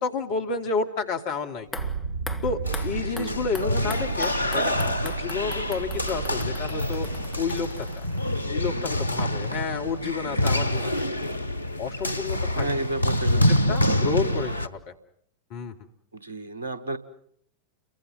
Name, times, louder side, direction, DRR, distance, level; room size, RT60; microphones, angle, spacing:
voice 1, 0.0-1.9 2.4-7.1 7.4-7.7 8.0-8.1 8.5-11.1 11.8-12.7 13.3-13.4 13.7-14.9 15.5-15.7, left 4 dB, 45° left, 5 dB, 2.7 m, -30 dB
sound 1, 1.6-8.7 9.0-9.1, left 2 dB, 5° left, 1.9 m, -43 dB
sound 2, 1.7-8.8, right 5 dB, 90° left, 2.1 m, -35 dB
sound 3, 2.6-14.7, left 1 dB, 90° right, 1.1 m, -26 dB
voice 2, 2.9-3.6 8.7-8.8 12.5-13.6 13.9-14.2 16.1-17.0, right 2 dB, 70° right, 13 dB, 1.9 m, -32 dB
30.0 x 24.0 x 5.6 m, 0.68 s
figure-of-eight pair, 90°, 0 cm